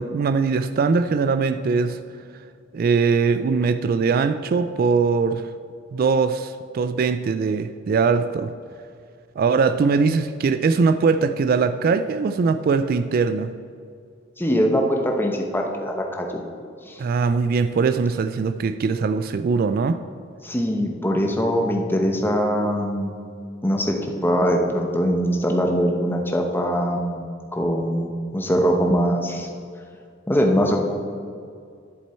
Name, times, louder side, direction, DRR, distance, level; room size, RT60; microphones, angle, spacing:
voice 1, 0.0-2.0 2.7-5.5 5.9-8.5 9.4-13.5 17.0-20.0, right 5 dB, 50° right, 11 dB, 0.3 m, -21 dB
voice 2, 14.4-16.4 16.9-17.0 20.4-23.1 23.6-27.2 27.5-29.5 30.3-30.8, equal, 10° left, 2 dB, 0.9 m, -22 dB
10.5 x 7.5 x 4.4 m, 2.2 s
head